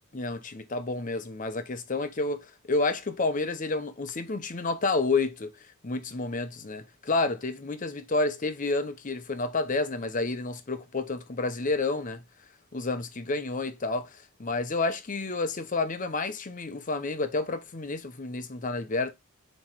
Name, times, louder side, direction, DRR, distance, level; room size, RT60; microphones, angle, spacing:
voice 1, 0.1-5.5 5.8-12.2 12.7-19.1, left 3 dB, 40° left, 0.8 m, -30 dB
7.3 x 3.1 x 4.5 m
head